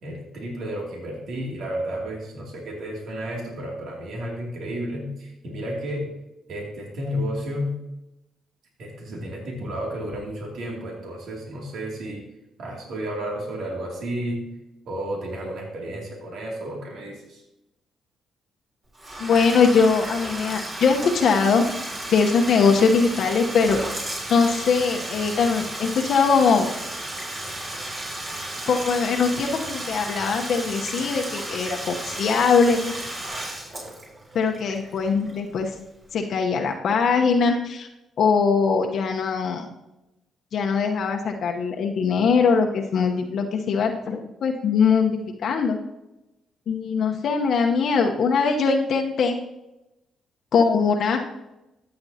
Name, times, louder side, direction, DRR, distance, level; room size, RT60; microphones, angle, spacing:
voice 1, 0.0-6.1 6.5-7.8 8.8-12.3 12.6-14.4 14.9-17.4, equal, 70° right, -1 dB, 2.6 m, -32 dB
Bathtub (filling or washing), 18.9-35.7, right 1 dB, 35° right, 3.6 m, -34 dB
voice 2, 19.2-21.6 22.1-23.8 24.3-26.7 28.7-32.8 34.3-35.7 36.1-37.9 38.2-39.7 40.5-45.8 46.7-49.4 50.5-51.2, left 5 dB, 65° left, 2 dB, 1.0 m, -21 dB
13.5 x 7.8 x 2.8 m, 0.93 s
supercardioid pair, 60°, 0 cm